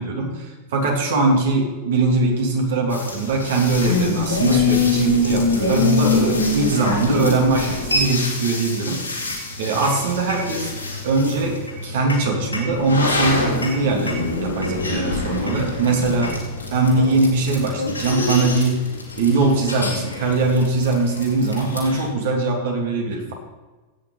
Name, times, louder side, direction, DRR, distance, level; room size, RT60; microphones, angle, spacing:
voice 1, 0.0-10.7 11.0-16.4 16.7-18.8 19.2-23.3, right 3 dB, 55° right, 0 dB, 3.1 m, -21 dB
sound 1, 2.9-22.0, left 3 dB, 80° left, 2.9 m, -25 dB
16.0 x 9.3 x 4.1 m, 1.3 s
figure-of-eight pair, 90°, 0 cm